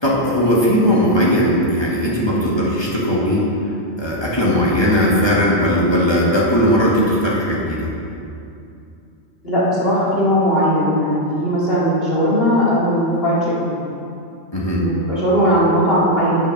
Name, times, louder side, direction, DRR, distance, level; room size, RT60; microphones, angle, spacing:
voice 1, 0.0-3.5 4.0-7.9 14.5-14.8, equal, 20° left, -6 dB, 1.9 m, -17 dB
voice 2, 9.4-13.7 14.8-16.5, equal, 55° left, -8 dB, 2.9 m, -18 dB
8.2 x 6.6 x 6.3 m, 2.6 s
omnidirectional pair, 1.2 m